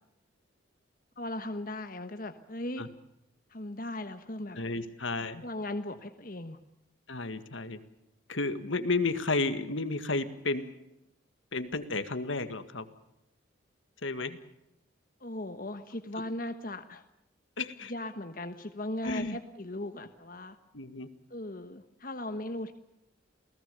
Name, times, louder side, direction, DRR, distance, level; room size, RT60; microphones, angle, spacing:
voice 1, 1.2-2.9 3.5-4.6 5.4-6.6 15.2-17.0 17.9-20.6 21.3-22.7, left 1 dB, 45° left, 8 dB, 1.3 m, -38 dB
voice 2, 4.6-5.4 7.1-7.8 8.3-10.8 11.5-12.9 14.0-14.4 17.6-17.9 19.0-19.4 20.7-21.1, left 3 dB, 75° left, 10 dB, 1.9 m, -32 dB
29.0 x 18.0 x 6.9 m, 0.86 s
head